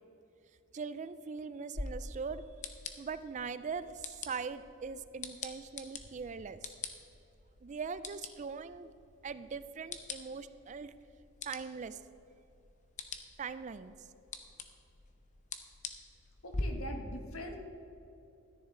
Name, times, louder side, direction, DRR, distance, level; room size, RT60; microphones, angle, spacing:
voice 1, 0.7-2.5 3.0-6.6 7.6-8.9 9.2-10.9 11.5-12.0 13.4-14.0, right 5 dB, 35° right, 14 dB, 0.3 m, -41 dB
sound 1, 1.7-16.6, left 3 dB, 35° left, 0.7 m, -46 dB
voice 2, 16.4-17.6, equal, 85° left, 3 dB, 1.4 m, -42 dB
13.5 x 10.0 x 3.8 m, 2.8 s
head